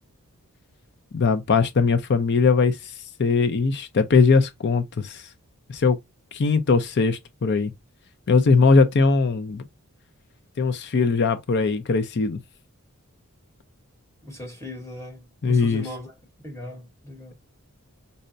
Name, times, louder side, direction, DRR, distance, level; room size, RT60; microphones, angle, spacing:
voice 1, 1.1-2.9 3.2-5.2 5.7-6.0 6.3-7.7 8.3-9.6 10.6-12.4 15.4-15.8, left 4 dB, 50° left, 0.5 m, -20 dB
voice 2, 14.2-16.1 16.4-17.3, left 1 dB, 15° left, 1.1 m, -38 dB
5.4 x 2.1 x 2.5 m
head